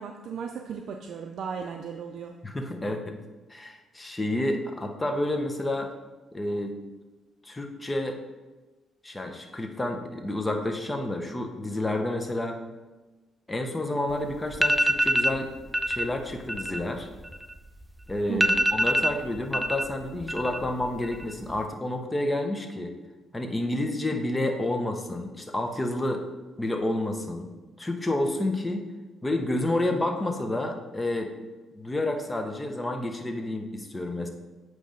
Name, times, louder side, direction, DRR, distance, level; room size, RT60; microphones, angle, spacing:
voice 1, 0.0-2.4 18.3-18.7, right 6 dB, 65° right, 3 dB, 0.4 m, -36 dB
voice 2, 2.4-3.2 3.5-5.9 6.3-6.7 7.4-8.2 9.0-12.6 13.5-15.5 15.9-17.1 18.1-22.9 23.3-26.3 26.6-27.5 27.8-28.8 29.2-31.3 31.7-34.3, left 1 dB, 15° left, 4 dB, 0.9 m, -29 dB
sound 1, 14.1-14.2 14.5-15.4 15.7-16.1 16.4-17.8 18.1-18.2 18.4-19.8 20.1-20.7 21.0-21.6, equal, 10° right, 0.4 m, -24 dB
7.7 x 3.2 x 5.1 m, 1.2 s
cardioid pair, 90°, 0 cm